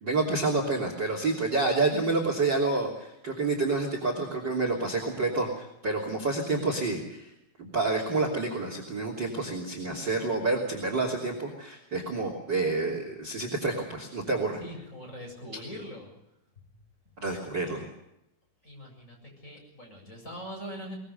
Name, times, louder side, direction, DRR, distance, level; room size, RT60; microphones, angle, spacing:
voice 1, 0.0-7.3 7.6-14.6 17.2-17.9, right 3 dB, 30° right, 3 dB, 3.4 m, -28 dB
voice 2, 14.6-16.1 16.6-16.7 18.6-21.0, equal, 20° left, 1 dB, 7.8 m, -43 dB
22.5 x 21.5 x 6.7 m, 0.84 s
omnidirectional pair, 4.4 m